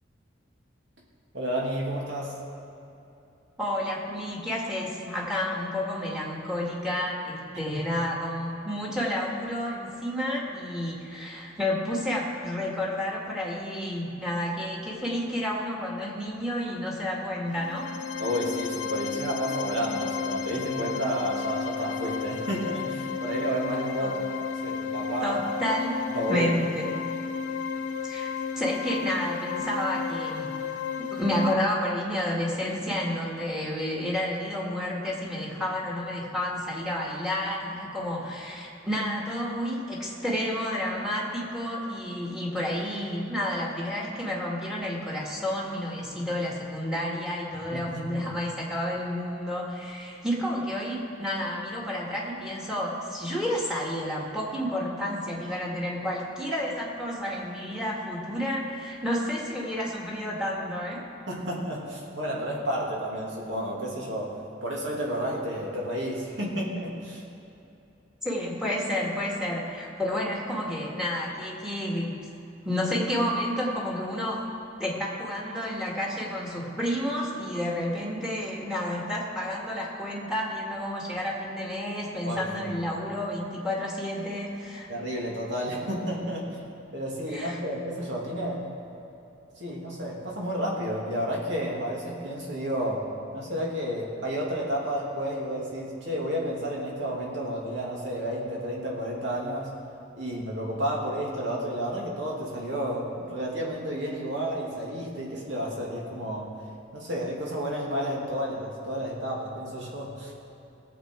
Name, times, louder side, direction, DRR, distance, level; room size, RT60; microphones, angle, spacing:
voice 1, 1.3-2.4 7.7-7.9 18.2-24.2 24.5-25.4 26.1-26.5 47.7-48.2 61.3-64.3 64.6-67.2 82.2-82.7 84.9-86.4 86.9-88.6 89.6-93.0 93.3-99.7 100.1-106.5 106.9-110.3, equal, 65° right, -3 dB, 2.6 m, -31 dB
voice 2, 3.6-17.9 24.0-24.1 25.2-26.0 26.3-26.9 28.0-30.5 31.0-61.0 68.2-72.2 72.6-74.5 74.8-84.9 87.3-87.6, left 1 dB, 5° right, -3 dB, 2.0 m, -30 dB
sound 1, 17.5-31.5, left 6 dB, 80° left, 0.7 m, -33 dB
19.0 x 7.7 x 4.6 m, 2.9 s
head